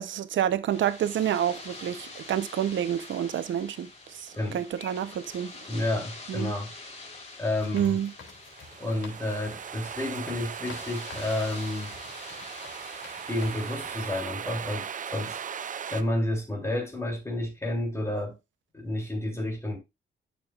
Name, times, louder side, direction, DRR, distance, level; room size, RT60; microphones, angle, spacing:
voice 1, 0.0-5.5 6.3-6.5 7.7-8.1, right 10 dB, 85° right, 0.8 m, -28 dB
sound 1, 0.7-14.2, left 3 dB, 35° left, 3.7 m, -46 dB
voice 2, 5.7-6.7 7.4-8.0 8.8-11.9 13.3-15.4 15.9-18.4 18.7-19.8, left 1 dB, 15° left, 3.5 m, -30 dB
sound 2, 7.5-14.0 14.6-14.8 15.3-15.6 15.9-16.1, left 5 dB, 90° left, 3.1 m, -50 dB
sound 3, 8.3-16.0, right 7 dB, 45° right, 0.6 m, -38 dB
11.0 x 6.9 x 2.4 m
wide cardioid pair, 140°, 19 cm